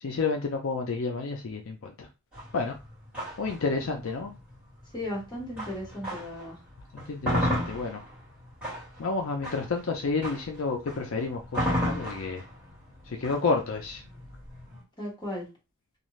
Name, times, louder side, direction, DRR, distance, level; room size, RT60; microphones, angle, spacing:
voice 1, 0.0-1.9 2.5-2.7 3.4-4.3 6.9-8.0 9.0-12.4 13.1-14.0, left 4 dB, 65° left, 3 dB, 0.5 m, -30 dB
sound 1, 2.3-6.5 6.9-14.8, equal, 5° right, 1.6 m, -33 dB
voice 2, 4.9-6.6 15.0-15.4, left 1 dB, 20° left, -4 dB, 1.4 m, -35 dB
2.6 x 2.3 x 3.1 m, 0.29 s
head